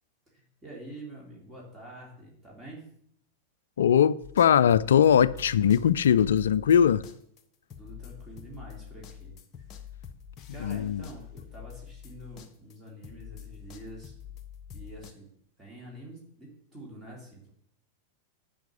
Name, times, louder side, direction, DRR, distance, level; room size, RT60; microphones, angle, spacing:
voice 1, 0.3-2.8 7.8-9.4 9.7-9.8 10.5-14.1 14.7-15.3 15.6-17.5, right 1 dB, 15° right, 2.9 m, -46 dB
voice 2, 3.8-7.0 10.6-11.0, left 8 dB, 65° left, 0.3 m, -21 dB
sound 1, 4.2-12.8 13.0-15.1, left 9 dB, 30° left, 1.0 m, -46 dB
10.5 x 4.9 x 6.9 m
figure-of-eight pair, 90°, 0 cm